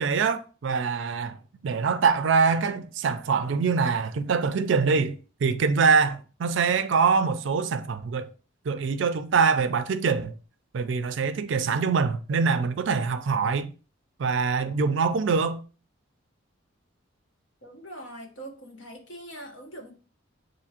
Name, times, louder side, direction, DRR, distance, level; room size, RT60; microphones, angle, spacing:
voice 1, 0.0-1.4 1.6-5.2 5.4-8.3 8.7-10.3 10.7-13.7 14.2-15.6, right 5 dB, 65° right, 0.4 m, -24 dB
voice 2, 17.6-19.9, right 1 dB, 60° left, 1.1 m, -42 dB
7.0 x 2.7 x 2.8 m
head